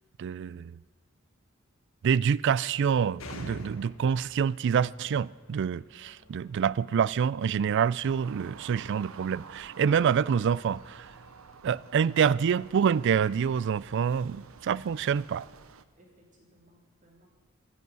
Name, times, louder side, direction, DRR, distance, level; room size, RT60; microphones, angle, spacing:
voice 1, 0.2-0.8 2.0-11.1 11.6-15.5, right 7 dB, 60° right, 0.3 m, -26 dB
sound 1, 3.2-11.6, left 2 dB, 80° left, 1.5 m, -51 dB
voice 2, 5.6-6.7 15.9-17.3, equal, 40° right, 3.3 m, -63 dB
sound 2, 8.0-15.9, right 5 dB, 85° right, 0.7 m, -50 dB
12.5 x 10.0 x 9.3 m
head